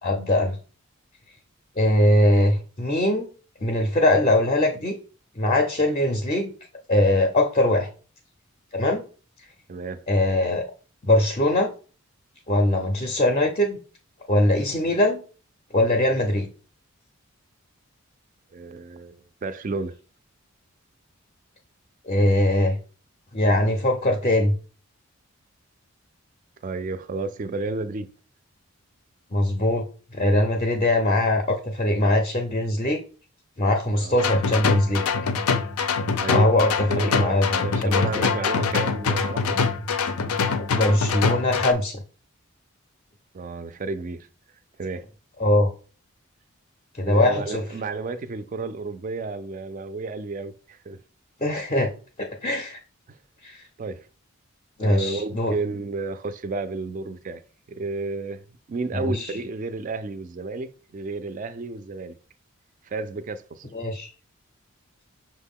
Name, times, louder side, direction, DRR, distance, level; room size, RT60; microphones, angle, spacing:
voice 1, 0.0-0.6 1.8-3.3 3.6-5.0 5.4-6.5 6.9-7.9 8.7-9.0 10.1-10.6 11.0-11.7 12.5-13.8 14.3-15.2 15.7-16.5 22.0-22.8 23.3-24.6 29.3-29.8 30.1-33.0 33.6-35.1 36.3-38.3 40.7-42.0 45.4-45.7 46.9-47.6 51.4-51.9 52.2-52.8 53.4-53.7 54.8-55.6 58.9-59.3 63.7-64.1, left 1 dB, 30° left, 0.4 m, -21 dB
voice 2, 9.7-10.0 18.5-19.9 26.6-28.1 33.9-34.1 36.2-39.6 43.3-44.3 44.8-45.1 47.0-51.0 53.1-53.2 53.8-54.1 54.8-57.4 57.7-62.2 62.8-63.7, right 3 dB, 35° right, 0.3 m, -32 dB
sound 1, 34.2-41.7, left 5 dB, 90° left, 0.5 m, -24 dB
5.9 x 2.1 x 3.6 m
head